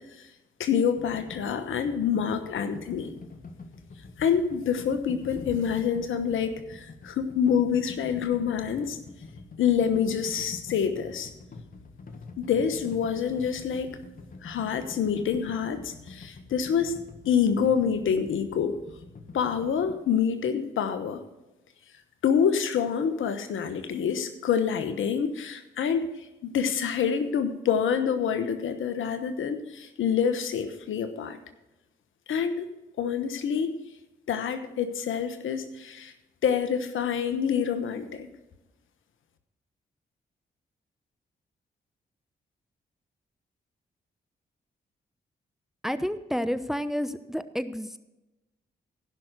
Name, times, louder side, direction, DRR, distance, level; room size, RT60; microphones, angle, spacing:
voice 1, 0.6-3.1 4.2-9.0 9.6-11.3 12.4-14.0 14.4-17.0 17.3-18.8 19.3-21.2 22.2-26.1 26.4-31.4 32.3-32.7 33.0-33.7 34.3-36.1 36.4-38.3, left 7 dB, 75° left, 9 dB, 1.1 m, -27 dB
sound 1, 1.0-19.9, left 3 dB, 45° left, 1.5 m, -46 dB
voice 2, 45.8-48.0, equal, ahead, 13 dB, 0.8 m, -30 dB
15.5 x 5.9 x 6.7 m, 0.99 s
supercardioid pair, 45°, 21 cm